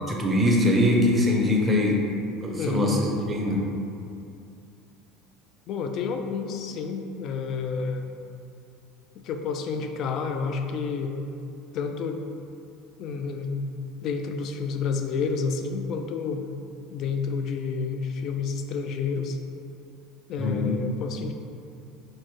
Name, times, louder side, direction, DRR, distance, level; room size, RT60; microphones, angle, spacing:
voice 1, 0.1-2.0 2.4-3.6 20.4-20.8, left 1 dB, 15° right, -1 dB, 0.5 m, -22 dB
voice 2, 2.6-2.9 5.7-8.1 9.2-11.1 11.7-12.2 13.0-13.5 14.0-16.4 16.9-19.4 20.3-21.3, left 5 dB, 45° left, 5 dB, 0.3 m, -29 dB
4.6 x 2.0 x 4.4 m, 2.6 s
supercardioid pair, 140°, 0 cm